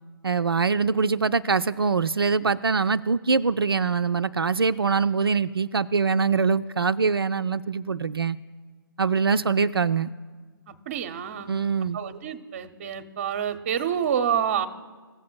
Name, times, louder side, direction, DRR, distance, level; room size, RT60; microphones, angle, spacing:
voice 1, 0.2-8.4 9.0-10.1 11.5-12.0, right 5 dB, 85° right, 11 dB, 0.4 m, -23 dB
voice 2, 10.7-11.6 11.9-14.7, right 8 dB, 35° right, 10 dB, 0.7 m, -28 dB
16.5 x 7.4 x 2.2 m, 1.4 s
figure-of-eight pair, 140°, 12 cm